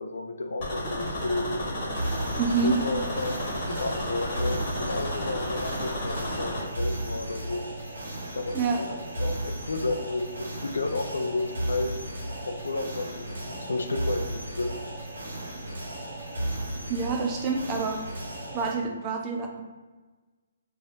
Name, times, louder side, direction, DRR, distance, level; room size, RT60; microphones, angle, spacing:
voice 1, 0.0-1.6 2.6-7.6 8.3-12.0 12.5-14.7, left 2 dB, 80° left, 6 dB, 0.4 m, -32 dB
sound 1, 0.6-6.6, left 1 dB, 35° left, 1.2 m, -32 dB
sound 2, 1.9-18.7, right 1 dB, 75° right, 0.9 m, -35 dB
voice 2, 2.4-2.8 8.5-8.8 16.9-18.0 18.5-19.6, right 4 dB, 25° right, 2 dB, 0.4 m, -27 dB
2.6 x 2.4 x 3.4 m, 1.3 s
hypercardioid pair, 145°, 0 cm